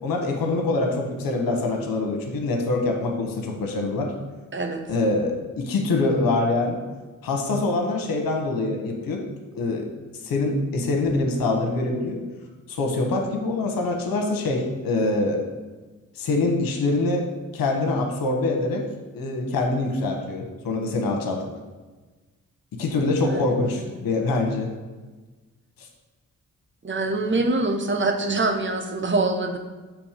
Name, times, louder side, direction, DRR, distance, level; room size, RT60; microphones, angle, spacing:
voice 1, 0.0-4.1 4.9-6.8 7.2-9.2 9.5-9.9 10.2-12.2 12.7-15.4 16.2-17.3 17.5-18.8 19.1-21.4 22.8-24.7, left 2 dB, 80° left, 2 dB, 1.0 m, -24 dB
voice 2, 4.5-4.8 23.2-23.9 26.8-29.6, right 2 dB, 35° right, 4 dB, 1.0 m, -25 dB
6.2 x 3.1 x 5.0 m, 1.3 s
supercardioid pair, 45°, 34 cm